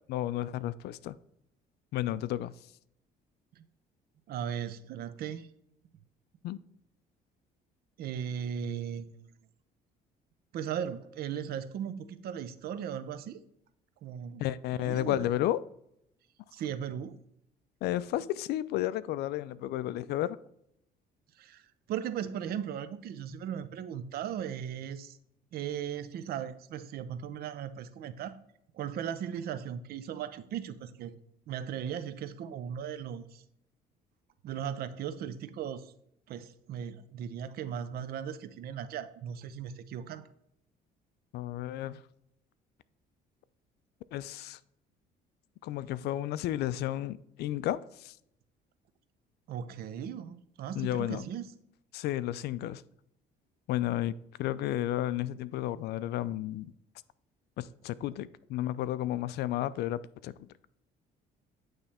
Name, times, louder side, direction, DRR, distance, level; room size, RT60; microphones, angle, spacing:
voice 1, 0.1-1.2 1.9-2.5 6.4-6.6 14.4-15.6 17.8-20.4 41.3-42.0 44.1-44.6 45.6-48.1 50.7-51.3 51.9-52.8 53.7-54.1 54.4-56.7 57.6-60.5, left 13 dB, 75° left, 0.4 m, -32 dB
voice 2, 4.3-5.5 8.0-9.3 10.5-13.4 14.0-14.4 14.7-15.3 16.5-17.2 21.4-21.6 21.9-25.2 25.5-28.3 28.7-31.1 31.5-33.4 34.4-35.9 36.3-40.3 49.5-51.4, right 9 dB, 65° right, 0.6 m, -37 dB
9.0 x 3.3 x 4.2 m
cardioid pair, 110°, 17 cm